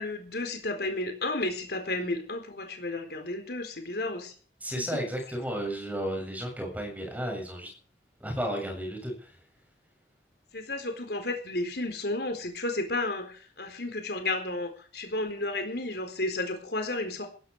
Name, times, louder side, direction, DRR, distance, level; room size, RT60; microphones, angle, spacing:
voice 1, 0.0-4.3 10.5-17.3, left 2 dB, 60° left, 5 dB, 4.0 m, -32 dB
voice 2, 4.6-7.7 8.2-9.4, equal, 10° right, 2 dB, 7.4 m, -33 dB
18.0 x 15.0 x 4.8 m, 0.42 s
head